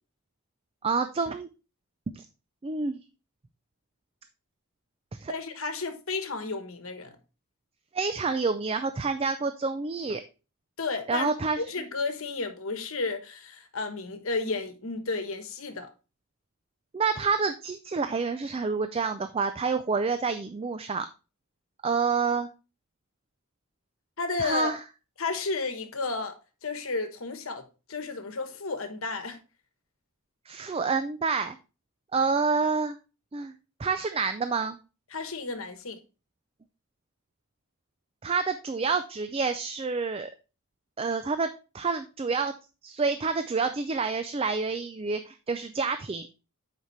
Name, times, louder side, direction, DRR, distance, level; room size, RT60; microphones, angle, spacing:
voice 1, 0.8-1.5 2.1-2.2 2.6-3.0 5.1-5.3 7.9-10.2 11.1-11.6 16.9-21.1 21.8-22.5 24.4-24.8 30.5-31.6 32.1-33.0 33.3-33.5 33.8-34.8 38.2-40.3 41.0-42.5 42.8-46.2, right 4 dB, 25° right, 0.4 m, -28 dB
voice 2, 5.3-7.2 10.8-11.3 11.6-15.9 24.2-24.7 25.2-27.6 27.9-29.4 35.1-36.0, left 3 dB, 65° left, 1.2 m, -32 dB
8.1 x 5.2 x 3.2 m
head